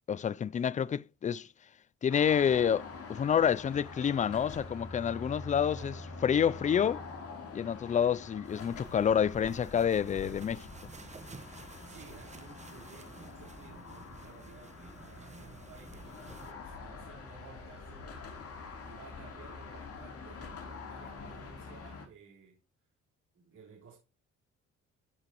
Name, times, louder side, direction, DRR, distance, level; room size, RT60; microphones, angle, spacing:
voice 1, 0.1-1.5 2.0-5.9 6.2-7.0 7.5-10.7, left 8 dB, 25° left, 0.3 m, -28 dB
sound 1, 2.1-22.1, left 4 dB, 50° left, 3.0 m, -46 dB
voice 2, 5.8-6.1 11.6-18.2 18.8-22.6 23.3-24.0, right 6 dB, 65° right, 4.3 m, -55 dB
sound 2, 8.4-16.5, right 4 dB, 25° right, 1.2 m, -52 dB
14.5 x 5.1 x 2.9 m
cardioid pair, 90°, 30 cm